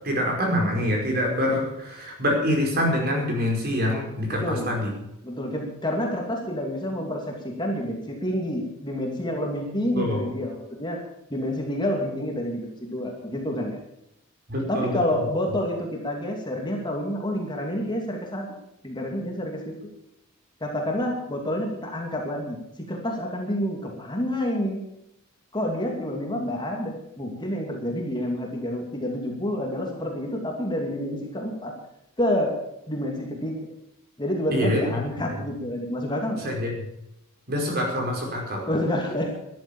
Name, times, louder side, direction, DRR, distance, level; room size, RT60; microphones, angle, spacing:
voice 1, 0.0-4.9 10.0-10.3 14.5-15.2 34.5-34.8 36.4-36.7 37.5-38.7, left 1 dB, 45° right, 1 dB, 5.0 m, -25 dB
voice 2, 4.3-4.7 5.2-11.0 11.3-13.8 14.7-18.5 18.8-19.7 20.6-24.8 25.5-31.7 32.2-32.5 32.9-33.6 34.2-36.4 38.7-39.3, left 1 dB, 20° left, 1 dB, 2.7 m, -28 dB
13.5 x 11.0 x 7.3 m, 0.83 s
head